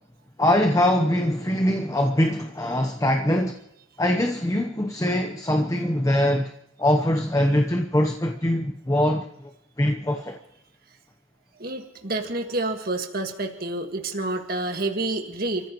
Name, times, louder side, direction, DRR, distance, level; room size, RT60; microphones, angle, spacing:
voice 1, 0.4-3.6 4.0-6.5 6.8-9.5 9.8-10.4, left 1 dB, 15° left, 0.9 m, -22 dB
voice 2, 11.6-15.7, right 2 dB, 45° right, 1.8 m, -28 dB
30.0 x 14.5 x 3.1 m
head